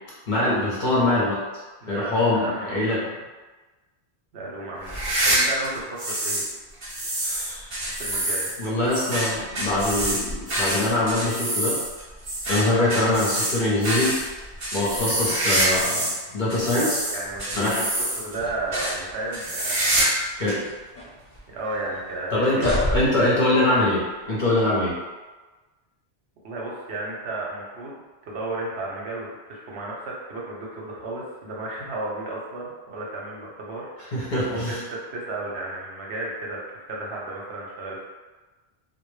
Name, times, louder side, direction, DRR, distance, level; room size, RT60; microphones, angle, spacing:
voice 1, 0.3-1.4 1.9-3.0 7.2-7.7 8.6-11.8 12.5-14.2 14.7-16.1 16.3-17.0 17.5-17.8 20.4-20.6 22.3-24.0 24.3-24.9 34.1-34.8, left 2 dB, 55° left, -6 dB, 0.7 m, -23 dB
voice 2, 1.8-3.1 4.3-6.4 8.0-8.5 15.0-15.2 16.7-17.9 18.2-20.1 21.5-23.0 26.4-33.9 34.5-38.0, right 2 dB, 75° right, -4 dB, 0.9 m, -33 dB
sound 1, 4.8-6.5 6.8-16.2 16.5-18.4 18.7-18.9 19.3-20.2 20.5-20.6 21.4-21.5 22.7-22.8, right 1 dB, 40° right, 0.5 m, -26 dB
sound 2, 18.3-19.1 19.5-19.6 20.3-21.4 21.6-22.0 22.4-23.4 24.2-24.4, equal, 35° left, 0.9 m, -31 dB
2.1 x 2.1 x 3.1 m, 1.2 s
omnidirectional pair, 1.1 m